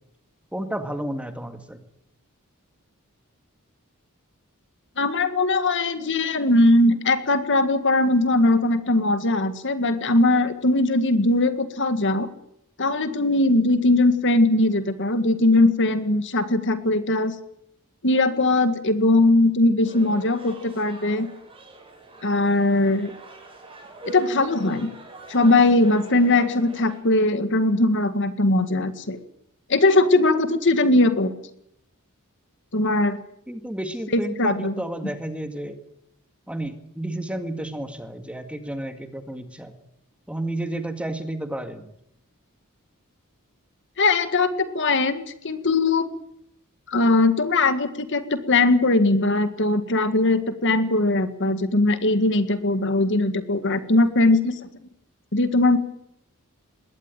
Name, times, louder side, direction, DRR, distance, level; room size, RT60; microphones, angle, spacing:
voice 1, 0.5-1.8 33.5-35.8 36.5-39.7 40.3-41.9, right 1 dB, 5° right, 8 dB, 1.9 m, -31 dB
voice 2, 5.0-12.3 12.8-17.3 18.0-21.3 22.2-23.1 24.1-24.9 25.3-29.2 29.7-31.3 32.7-33.2 34.1-34.7 44.0-46.1 46.9-54.5 55.3-55.8, left 2 dB, 55° left, 10 dB, 1.8 m, -20 dB
sound 1, 19.8-27.0, right 2 dB, 25° right, 7.4 m, -43 dB
21.5 x 17.5 x 9.2 m, 0.75 s
head